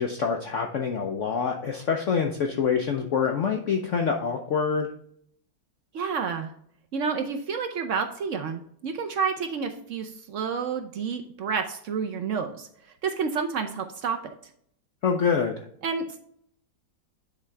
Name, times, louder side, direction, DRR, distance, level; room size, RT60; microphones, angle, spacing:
voice 1, 0.0-4.9 15.0-15.5, left 6 dB, 65° left, 3 dB, 0.7 m, -26 dB
voice 2, 5.9-6.5 6.9-12.7 13.0-14.2 15.8-16.2, right 5 dB, 75° right, 5 dB, 0.7 m, -29 dB
9.4 x 3.6 x 3.3 m, 0.66 s
omnidirectional pair, 2.0 m